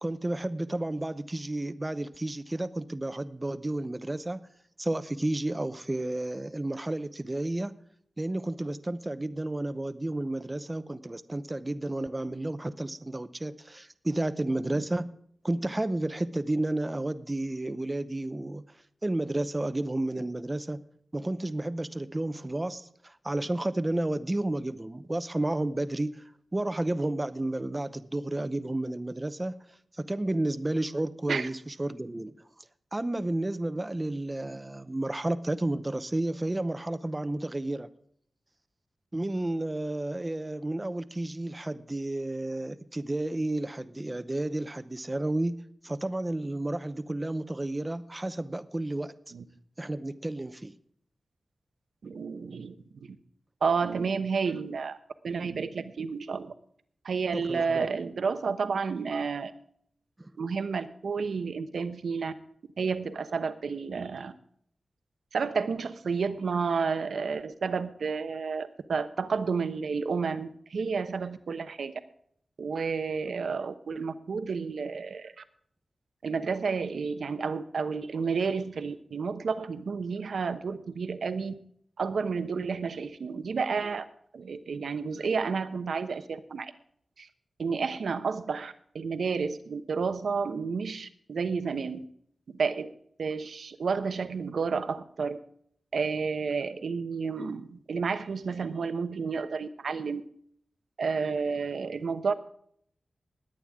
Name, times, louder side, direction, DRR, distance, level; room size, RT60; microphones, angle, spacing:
voice 1, 0.0-4.4 4.8-7.7 8.2-15.1 15.4-18.6 19.0-20.8 21.1-26.2 26.5-29.6 29.9-32.3 32.9-37.9 39.1-45.6 45.8-49.1 49.8-50.7 57.3-57.9 60.2-60.3, right 1 dB, 20° right, 12 dB, 0.7 m, -31 dB
voice 2, 52.0-53.1 53.6-55.0 55.2-56.5 57.0-59.5 60.4-62.3 62.8-64.3 65.3-71.9 72.6-75.4 76.2-81.5 82.0-84.1 84.3-86.7 87.2-87.3 87.6-92.0 92.5-92.9 93.2-95.4 95.9-100.2 101.0-102.3, right 5 dB, 80° right, 10 dB, 1.0 m, -31 dB
20.5 x 9.0 x 3.6 m, 0.65 s
wide cardioid pair, 115°, 0 cm